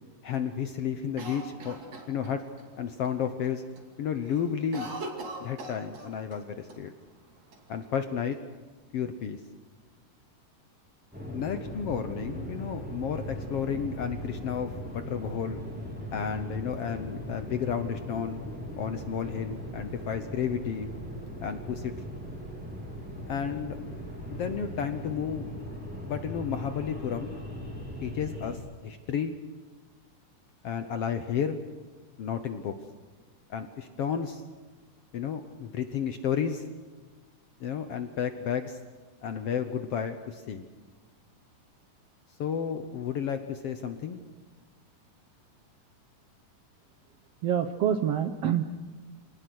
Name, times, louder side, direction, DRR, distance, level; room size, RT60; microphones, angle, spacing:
voice 1, 0.2-1.8 2.1-2.4 2.8-3.6 4.0-4.9 5.4-6.9 7.7-8.4 8.9-9.4 11.3-15.6 16.1-18.4 18.8-20.9 21.4-21.9 23.3-23.8 24.3-25.5 26.0-27.3 28.0-29.3 30.6-31.6 32.2-32.7 33.5-34.4 35.1-36.7 37.6-38.8 39.2-40.6 42.4-44.2, left 8 dB, 65° left, 8 dB, 1.5 m, -32 dB
Cough, 1.2-2.7 3.0-3.1 3.4-3.9 4.1-6.4 6.7-6.8 7.5-8.3, right 1 dB, 55° right, 3.7 m, -41 dB
sound 1, 11.1-28.6, equal, 5° right, 3.2 m, -39 dB
voice 2, 47.4-48.6, right 9 dB, 75° right, 9 dB, 1.5 m, -26 dB
26.5 x 19.5 x 6.3 m, 1.4 s
omnidirectional pair, 3.7 m